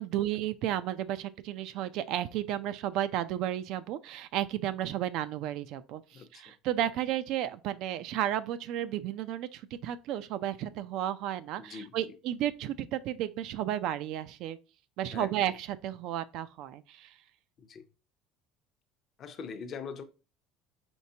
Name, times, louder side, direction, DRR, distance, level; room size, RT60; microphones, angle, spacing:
voice 1, 0.0-14.6 15.0-17.2, right 12 dB, 65° right, 0.4 m, -33 dB
voice 2, 6.1-6.5 11.6-12.1 15.1-15.3 17.6-17.9 19.2-20.0, left 6 dB, 40° left, 0.6 m, -42 dB
4.5 x 3.3 x 2.7 m
cardioid pair, 125°, 0 cm